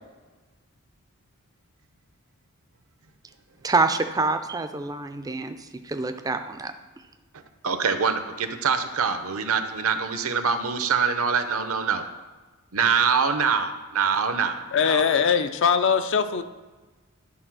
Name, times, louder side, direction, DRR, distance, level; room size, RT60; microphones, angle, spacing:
voice 1, 3.6-6.7, right 3 dB, 15° right, 8 dB, 0.4 m, -26 dB
voice 2, 7.6-12.0 12.7-14.6 14.9-15.0, right 6 dB, 70° right, 8 dB, 0.7 m, -24 dB
voice 3, 14.7-16.4, left 6 dB, 55° left, 10 dB, 0.5 m, -21 dB
10.5 x 4.0 x 6.1 m, 1.3 s
head